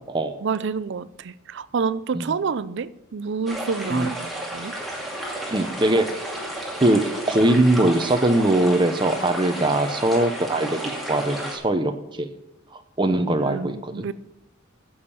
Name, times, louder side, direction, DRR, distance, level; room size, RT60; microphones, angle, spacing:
voice 1, 0.4-4.7 13.4-14.1, right 5 dB, 60° right, 0.5 m, -28 dB
sound 1, 3.5-11.6, right 1 dB, ahead, 2.3 m, -32 dB
voice 2, 5.5-6.1 6.8-7.0 7.3-10.8 11.1-12.3 13.0-14.1, right 1 dB, 25° right, 0.7 m, -21 dB
10.0 x 7.2 x 6.9 m
head